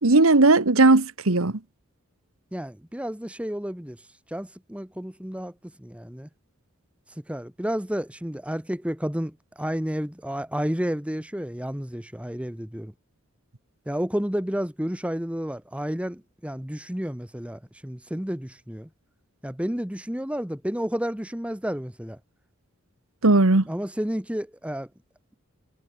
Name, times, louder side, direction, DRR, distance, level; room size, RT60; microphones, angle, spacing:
voice 1, 0.0-1.6 23.2-23.6, right 2 dB, 75° right, 1.5 m, -17 dB
voice 2, 2.5-4.0 4.3-5.5 5.8-6.3 7.3-12.9 13.9-18.9 19.4-22.2 23.7-24.9, equal, 5° right, 1.1 m, -31 dB
head